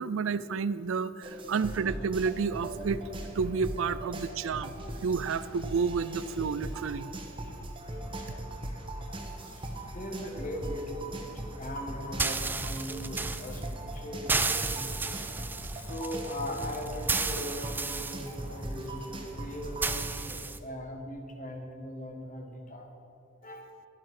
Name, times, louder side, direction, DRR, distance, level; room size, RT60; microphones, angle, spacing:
voice 1, 0.0-3.0 3.4-4.8 5.0-7.1, right 5 dB, 75° right, 16 dB, 0.4 m, -30 dB
sound 1, 1.2-20.1, right 1 dB, 25° right, 1.2 m, -39 dB
voice 2, 8.0-8.4 9.4-15.1 15.7-22.9 23.4-23.8, equal, 40° left, 2 dB, 1.5 m, -40 dB
sound 2, 9.1-20.6, right 4 dB, 10° right, 0.3 m, -35 dB
12.0 x 11.5 x 4.9 m, 2.7 s
head